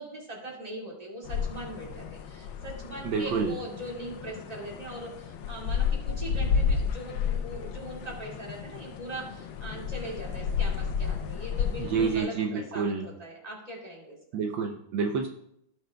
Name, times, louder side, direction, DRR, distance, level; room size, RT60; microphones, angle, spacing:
voice 1, 0.0-14.2, right 1 dB, 20° right, -2 dB, 2.1 m, -40 dB
sound 1, 1.3-12.2, left 6 dB, 90° left, 1.5 m, -32 dB
voice 2, 3.0-3.5 11.8-13.1 14.3-15.3, right 5 dB, 75° right, 3 dB, 1.4 m, -28 dB
17.5 x 6.4 x 2.3 m, 0.74 s
omnidirectional pair, 2.2 m